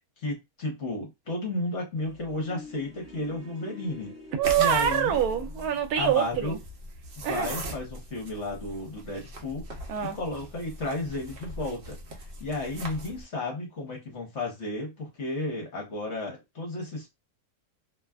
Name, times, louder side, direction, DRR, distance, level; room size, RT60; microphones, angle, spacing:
voice 1, 0.2-4.1 4.6-5.2 6.0-6.6 7.2-9.6 10.0-12.0 12.4-17.1, left 2 dB, 55° left, 1.1 m, -33 dB
sound 1, 1.9-5.9, left 3 dB, 40° right, 0.9 m, -47 dB
voice 2, 4.3-6.6 7.2-7.7 9.9-10.2, right 10 dB, 80° right, 1.1 m, -25 dB
sound 2, 4.4-13.2, right 1 dB, 60° right, 0.6 m, -40 dB
2.7 x 2.3 x 2.3 m
omnidirectional pair, 1.6 m